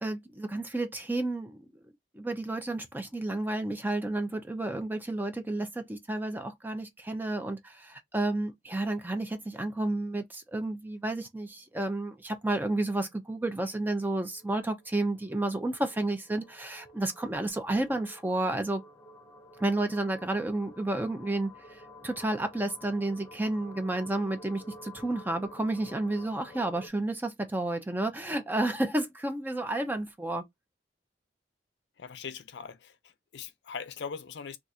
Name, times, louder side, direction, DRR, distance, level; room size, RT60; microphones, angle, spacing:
voice 1, 0.0-1.7 2.1-18.8 19.6-30.4, right 2 dB, 10° right, 0.5 m, -31 dB
sound 1, 11.6-12.2 12.5-12.6 12.7-26.9, left 1 dB, 20° left, 0.8 m, -52 dB
voice 2, 32.0-34.6, left 6 dB, 70° left, 0.5 m, -41 dB
2.4 x 2.4 x 4.1 m
head